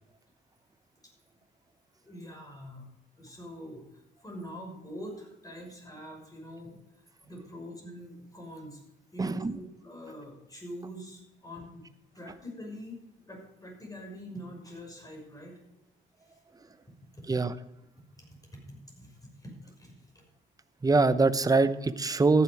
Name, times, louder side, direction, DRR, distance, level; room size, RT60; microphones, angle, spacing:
voice 1, 2.0-8.8 9.1-11.9 12.1-15.8 16.2-16.4 17.1-17.4 18.5-19.5 19.8-20.2, equal, 20° left, 1 dB, 6.0 m, -45 dB
voice 2, 9.2-9.6 17.3-17.5 20.8-22.4, right 3 dB, 20° right, 12 dB, 0.8 m, -23 dB
14.0 x 10.5 x 4.8 m, 0.90 s
cardioid pair, 90°, 20 cm